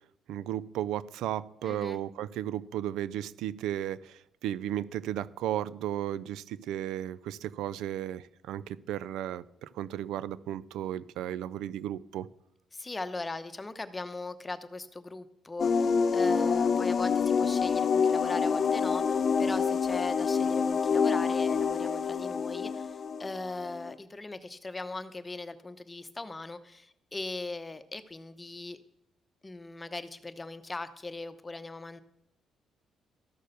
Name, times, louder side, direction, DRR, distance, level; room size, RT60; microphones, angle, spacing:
voice 1, 0.3-12.3, right 11 dB, 90° right, 18 dB, 0.4 m, -34 dB
voice 2, 1.6-2.0 12.7-28.8 29.4-32.0, left 2 dB, 20° left, 11 dB, 0.9 m, -39 dB
sound 1, 15.6-23.9, left 6 dB, 50° left, 0.6 m, -27 dB
13.5 x 6.6 x 6.7 m, 0.82 s
cardioid pair, 90°, 0 cm